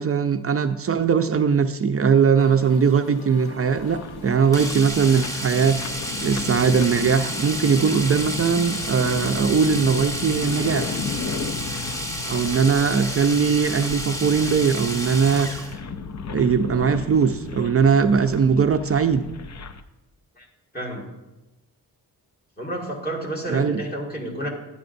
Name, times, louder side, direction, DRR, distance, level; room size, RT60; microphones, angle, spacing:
voice 1, 0.0-5.8 6.2-11.0 12.3-15.6 16.3-19.3 23.5-23.8, right 6 dB, 40° right, 9 dB, 0.4 m, -20 dB
Musical instrument, 2.4-8.5, left 3 dB, 75° left, 0.9 m, -43 dB
sound 1, 3.2-19.8, left 5 dB, 45° left, 0.5 m, -34 dB
Domestic sounds home sounds, 4.5-15.8 17.9-18.0 18.3-18.4, equal, 10° left, 0.7 m, -31 dB
voice 2, 20.7-21.1 22.6-24.5, right 1 dB, 25° left, -2 dB, 1.9 m, -30 dB
12.0 x 9.8 x 2.6 m, 1.0 s
wide cardioid pair, 140°, 39 cm